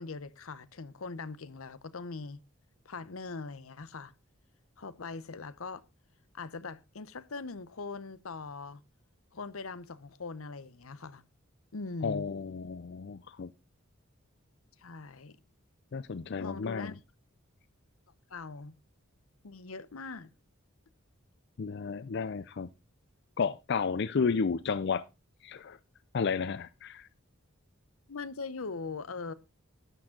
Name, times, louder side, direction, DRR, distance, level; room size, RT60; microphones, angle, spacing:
voice 1, 0.0-2.4 2.8-4.1 4.8-5.8 6.3-8.8 9.3-11.2 11.7-12.3 14.8-15.4 16.4-17.0 18.3-18.7 19.4-20.3 28.1-29.3, left 4 dB, 80° left, 0.8 m, -41 dB
voice 2, 12.0-13.5 15.9-17.0 21.6-22.7 23.4-25.0 25.4-25.8 26.1-27.1, left 5 dB, 55° left, 0.4 m, -32 dB
12.0 x 8.9 x 3.7 m
head